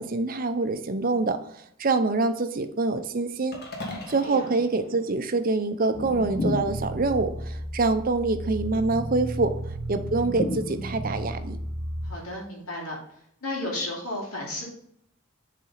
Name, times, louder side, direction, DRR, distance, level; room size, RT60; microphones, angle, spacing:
voice 1, 0.0-1.4 1.8-3.6 4.1-9.5 9.9-11.6, right 3 dB, 40° right, 9 dB, 0.6 m, -25 dB
sound 1, 3.5-5.8, left 2 dB, 45° left, 1.5 m, -41 dB
voice 2, 3.8-4.5 12.0-13.0 13.4-14.6, left 1 dB, 90° left, -2 dB, 2.5 m, -34 dB
sound 2, 5.9-12.1, right 1 dB, 15° left, 2.0 m, -34 dB
sound 3, 6.4-7.2 10.4-11.3, left 2 dB, 30° left, 0.4 m, -31 dB
7.0 x 4.2 x 4.0 m, 0.71 s
head